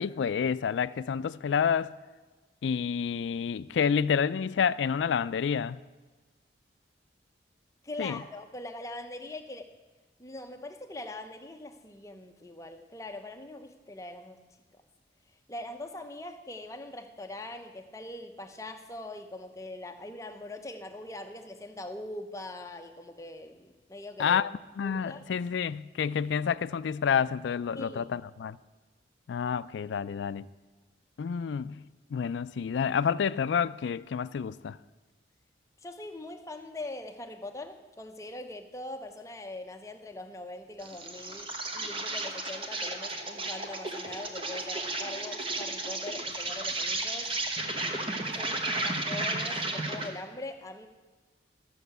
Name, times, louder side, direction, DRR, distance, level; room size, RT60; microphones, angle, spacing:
voice 1, 0.0-1.9 2.6-5.8 8.0-8.2 24.2-24.5 24.8-28.6 29.3-30.5 31.2-31.8 32.1-34.8, left 7 dB, 80° left, 0.3 m, -29 dB
voice 2, 7.8-9.7 10.2-14.4 15.5-24.4 24.8-25.2 27.8-28.1 35.8-47.3 48.3-50.9, left 2 dB, 15° left, 0.7 m, -42 dB
Insect, 40.8-50.2, right 2 dB, 30° right, 1.1 m, -33 dB
13.5 x 6.4 x 8.0 m
head